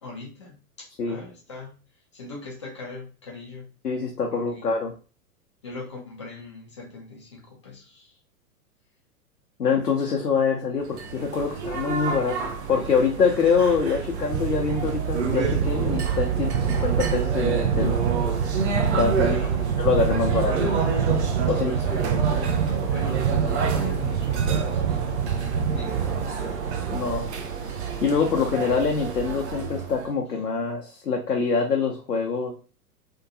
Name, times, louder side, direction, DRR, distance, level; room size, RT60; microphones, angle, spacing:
voice 1, 0.0-3.7 4.3-4.7 5.6-8.2 19.1-19.7 21.5-26.3, left 3 dB, 20° left, -2 dB, 0.3 m, -40 dB
voice 2, 3.8-4.9 9.6-12.4 12.7-18.0 19.0-19.4 19.8-20.7 21.5-21.7 26.9-27.3 28.0-32.5, left 5 dB, 85° left, 0 dB, 0.6 m, -24 dB
sound 1, 10.9-30.1, right 6 dB, 50° right, 0.5 m, -25 dB
2.7 x 2.2 x 2.5 m, 0.36 s
figure-of-eight pair, 105°, 46 cm